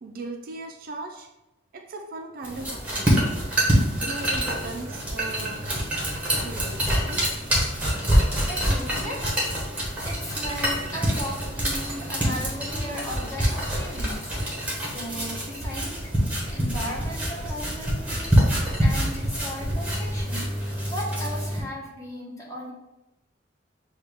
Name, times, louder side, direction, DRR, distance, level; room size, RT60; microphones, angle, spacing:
voice 1, 0.0-1.3 1.7-3.4 4.0-5.7 6.4-7.3, right 2 dB, 50° right, 4 dB, 0.4 m, -38 dB
sound 1, 2.4-21.6, equal, 5° right, 1.1 m, -26 dB
voice 2, 3.4-3.7 8.4-16.1 16.5-22.7, equal, 15° left, -4 dB, 1.0 m, -37 dB
6.5 x 2.3 x 3.5 m, 0.97 s
head